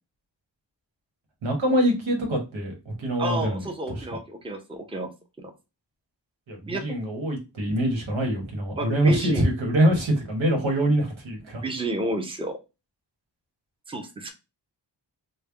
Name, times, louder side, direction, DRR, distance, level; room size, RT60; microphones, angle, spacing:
voice 1, 1.4-4.1 6.5-11.6, right 1 dB, 90° right, 0 dB, 1.3 m, -24 dB
voice 2, 3.2-5.1 5.4-5.5 6.7-6.8 8.8-9.4 11.6-12.6 13.9-14.3, right 1 dB, 10° right, 4 dB, 0.7 m, -30 dB
3.4 x 2.2 x 3.3 m, 0.26 s
cardioid pair, 70°, 45 cm